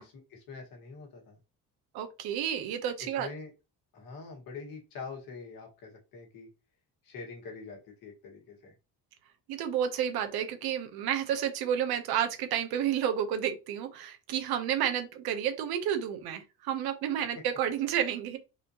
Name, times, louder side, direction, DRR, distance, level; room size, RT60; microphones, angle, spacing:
voice 1, 0.0-1.4 3.0-3.5 3.9-6.5 7.0-8.7, left 4 dB, 65° left, 1.7 m, -45 dB
voice 2, 1.9-3.3 9.5-18.4, right 9 dB, 75° right, 0.9 m, -31 dB
4.2 x 2.5 x 2.9 m
cardioid pair, 150°, 37 cm